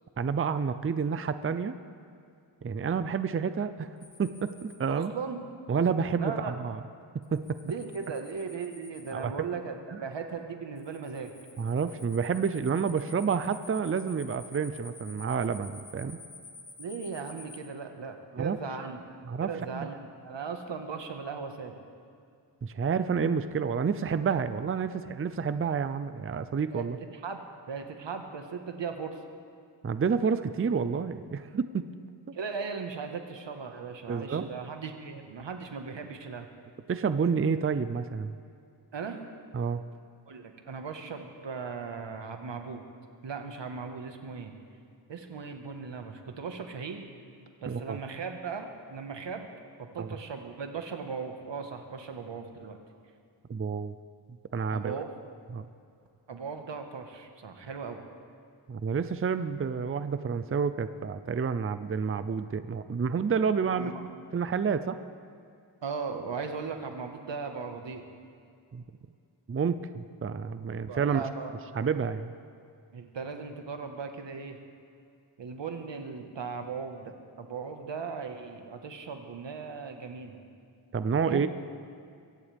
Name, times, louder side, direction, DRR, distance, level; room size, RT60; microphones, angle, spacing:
voice 1, 0.2-1.8 2.6-3.9 4.2-5.1 5.7-6.8 7.3-7.6 9.1-9.3 11.6-16.2 18.3-18.6 19.3-19.9 22.6-27.0 29.8-31.9 34.1-34.5 36.9-38.3 39.5-39.8 47.7-48.0 50.0-50.1 53.5-53.9 54.5-55.0 55.5-55.7 58.7-63.9 64.3-65.0 68.7-68.8 69.5-71.2 71.8-72.3 80.9-81.5, right 6 dB, 30° right, 11 dB, 0.5 m, -29 dB
sound 1, 4.0-4.7 7.2-9.1 10.8-17.6, left 3 dB, 45° left, 2.7 m, -49 dB
voice 2, 4.9-5.5 6.2-6.5 7.6-11.3 16.8-19.0 19.4-21.7 26.7-26.8 27.1-29.2 32.3-36.5 38.9-39.2 40.3-42.8 43.2-44.5 45.1-47.0 47.6-49.5 49.8-52.8 54.7-55.1 56.3-58.0 63.7-64.0 65.8-68.0 70.9-71.9 72.9-74.6 75.4-80.4 81.2-81.5, right 5 dB, 90° right, 4 dB, 1.5 m, -38 dB
23.0 x 17.0 x 3.5 m, 2.4 s
wide cardioid pair, 135°, 42 cm